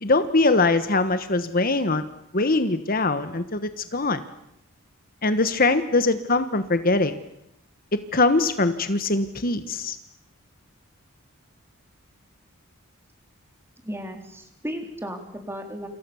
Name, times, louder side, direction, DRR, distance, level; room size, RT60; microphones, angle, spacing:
voice 1, 0.0-2.0 2.3-4.2 5.2-7.2 8.1-10.0, left 3 dB, 40° left, 11 dB, 1.3 m, -22 dB
voice 2, 13.8-15.9, equal, 10° right, 5 dB, 4.0 m, -35 dB
28.5 x 28.0 x 7.1 m, 0.81 s
head